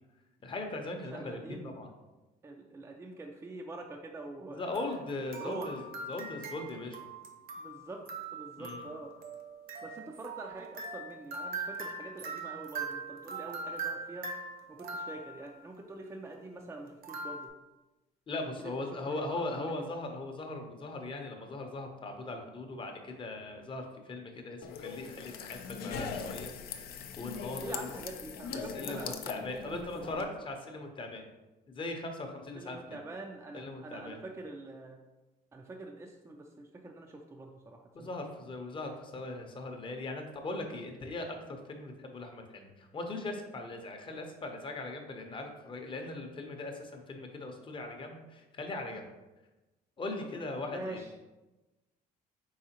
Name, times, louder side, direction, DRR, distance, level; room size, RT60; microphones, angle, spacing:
voice 1, 0.4-1.9 4.5-5.8 6.1-7.0 8.6-8.9 18.3-26.5 27.2-27.9 28.5-31.2 31.7-32.8 33.5-34.2 37.9-49.1 50.0-51.0, left 2 dB, 30° left, 4 dB, 0.7 m, -39 dB
voice 2, 1.1-1.8 2.4-5.0 5.4-5.8 7.6-8.0 8.3-9.1 9.8-14.3 14.7-17.5 18.6-18.7 19.1-19.2 19.5-19.9 27.6-30.2 32.5-35.0 35.5-38.1 50.7-51.1, right 2 dB, 15° right, 2 dB, 0.3 m, -45 dB
sound 1, 4.7-15.6 17.0-17.5, right 3 dB, 60° right, 0.8 m, -41 dB
sound 2, 24.6-30.2, left 6 dB, 65° left, 0.4 m, -40 dB
4.8 x 3.5 x 2.8 m, 1.1 s
cardioid pair, 110°, 17 cm